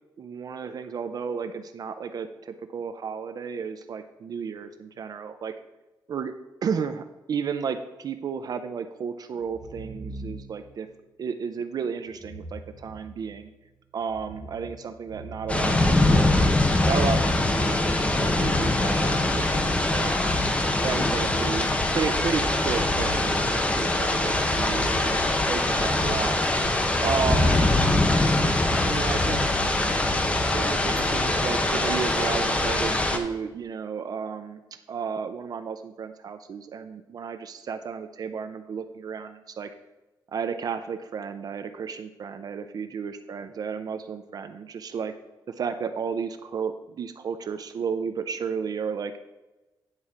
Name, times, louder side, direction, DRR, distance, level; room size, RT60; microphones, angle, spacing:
voice 1, 0.2-5.5 6.1-6.3 6.6-10.9 11.2-13.5 13.9-16.3 16.9-20.1 20.8-21.7 21.9-26.4 27.0-28.5 28.8-29.5 30.2-34.6 34.9-39.7 40.3-45.1 45.5-49.2, right 6 dB, 55° right, 9 dB, 0.4 m, -33 dB
sound 1, 9.4-10.7 12.1-13.5 14.0-16.5, right 2 dB, 25° right, 2.3 m, -43 dB
sound 2, 15.5-33.2, left 2 dB, 15° left, 0.7 m, -23 dB
9.7 x 4.2 x 5.0 m, 1.1 s
wide cardioid pair, 155°, 8 cm